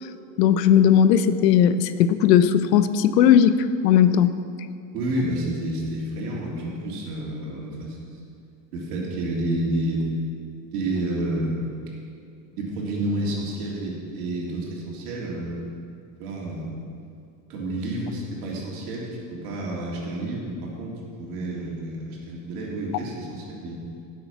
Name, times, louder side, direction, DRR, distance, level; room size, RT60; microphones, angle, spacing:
voice 1, 0.4-3.6 3.8-4.3, left 9 dB, 85° left, 12 dB, 0.9 m, -17 dB
voice 2, 4.9-8.2 8.7-10.1 10.7-11.7 12.5-15.6 16.2-16.7 17.5-23.8, right 1 dB, 65° right, -3 dB, 3.4 m, -29 dB
18.0 x 7.9 x 5.7 m, 2.5 s
supercardioid pair, 160°, 48 cm